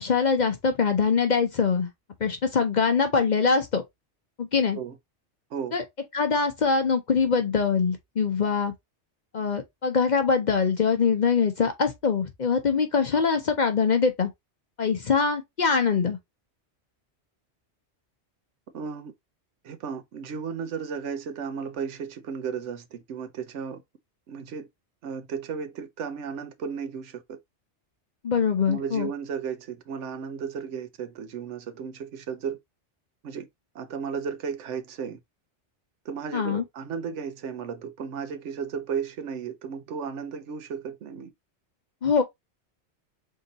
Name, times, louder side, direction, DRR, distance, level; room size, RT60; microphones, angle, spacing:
voice 1, 0.0-1.9 2.2-3.8 4.4-4.8 5.7-5.8 6.1-8.7 9.3-14.3 14.8-16.2 28.2-29.1 36.3-36.6 42.0-42.2, left 5 dB, 45° left, 0.7 m, -23 dB
voice 2, 18.7-19.1 19.6-23.8 24.3-24.7 25.0-27.4 28.7-32.6 33.2-33.5 33.7-35.2 36.0-41.3, right 6 dB, 80° right, 1.0 m, -34 dB
3.8 x 2.7 x 3.9 m
omnidirectional pair, 1.2 m